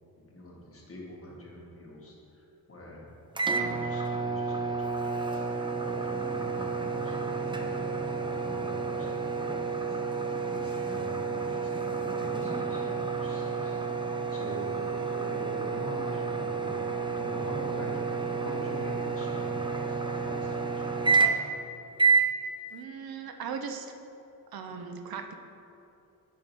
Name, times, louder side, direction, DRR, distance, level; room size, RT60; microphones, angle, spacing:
voice 1, 0.2-3.0 3.5-13.8 14.3-14.7 15.2-17.9 18.4-21.4, left 1 dB, 35° left, -4 dB, 1.8 m, -45 dB
sound 1, 3.3-21.6 22.0-22.3, right 5 dB, 15° right, 0.5 m, -30 dB
voice 2, 14.9-15.3 22.7-23.9 24.5-25.3, right 6 dB, 70° right, 5 dB, 0.7 m, -39 dB
9.1 x 5.8 x 3.5 m, 2.8 s
wide cardioid pair, 110°, 38 cm